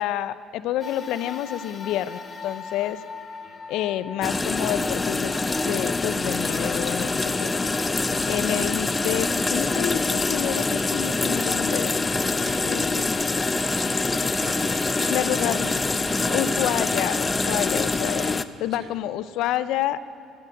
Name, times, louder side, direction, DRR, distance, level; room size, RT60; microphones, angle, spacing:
voice 1, 0.0-3.0 3.7-5.3 5.6-7.5 8.3-12.0 12.7-13.0 15.1-15.9 16.3-18.3 18.6-20.1, left 12 dB, 75° left, 15 dB, 0.5 m, -28 dB
sound 1, 0.8-9.4 10.0-10.1 11.2-11.3, left 4 dB, 40° left, 1.3 m, -42 dB
sound 2, 4.2-18.4, left 3 dB, 25° left, 0.6 m, -25 dB
voice 2, 7.8-8.1 8.5-8.8 12.4-12.9 13.5-15.8 16.2-16.8 17.3-17.6 18.0-18.3 18.7-18.9, right 4 dB, 55° right, 3 dB, 2.0 m, -42 dB
12.5 x 11.5 x 7.8 m, 2.3 s
supercardioid pair, 75°, 0 cm